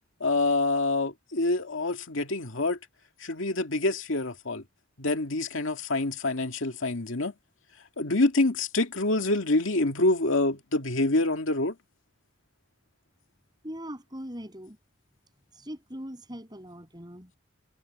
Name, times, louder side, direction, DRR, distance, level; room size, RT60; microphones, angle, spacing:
voice 1, 0.2-2.8 3.2-4.6 5.0-7.3 8.0-11.7, left 2 dB, 75° left, 2.2 m, -26 dB
voice 2, 13.6-14.8 15.5-17.4, equal, 20° right, 8.0 m, -41 dB
head